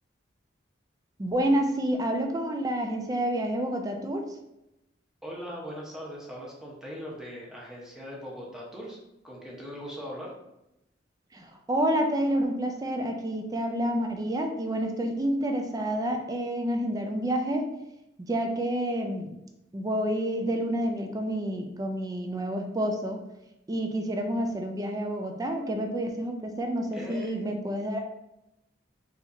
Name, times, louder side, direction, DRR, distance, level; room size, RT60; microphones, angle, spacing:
voice 1, 1.2-4.3 11.3-17.7 18.3-19.3 19.7-23.2 23.7-28.0, right 1 dB, 20° right, 4 dB, 0.4 m, -29 dB
voice 2, 5.2-9.0 9.2-10.3 26.9-27.5, equal, 5° right, -4 dB, 0.8 m, -40 dB
4.0 x 2.9 x 2.6 m, 0.88 s
head